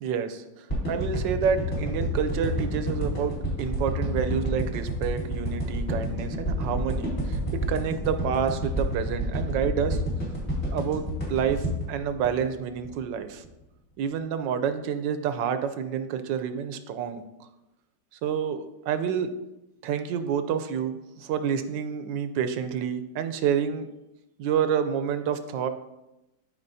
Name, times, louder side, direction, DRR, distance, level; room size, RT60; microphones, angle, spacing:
voice 1, 0.0-10.0 10.7-13.4 14.0-17.5 18.2-19.3 19.8-23.9 24.4-25.7, right 8 dB, 80° right, 9 dB, 1.3 m, -28 dB
sound 1, 0.7-13.0 13.4-13.5, right 1 dB, 35° left, 3.0 m, -29 dB
13.0 x 4.7 x 2.7 m, 0.94 s
omnidirectional pair, 2.0 m